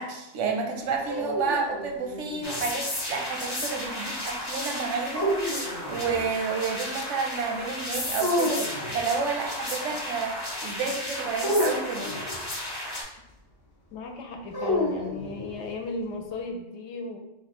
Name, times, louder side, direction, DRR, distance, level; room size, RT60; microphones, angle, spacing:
voice 1, 0.0-8.6 8.9-12.1, right 5 dB, 90° right, 2 dB, 1.0 m, -30 dB
sound 1, 0.8-2.7 5.1-6.4 8.2-9.0 11.4-12.5 14.5-15.7, equal, 40° left, 0.3 m, -30 dB
sound 2, 2.4-13.0, left 1 dB, 25° left, 0.7 m, -34 dB
voice 2, 13.9-17.2, left 3 dB, 75° left, 4 dB, 0.9 m, -36 dB
3.1 x 2.2 x 4.2 m, 0.94 s
omnidirectional pair, 1.2 m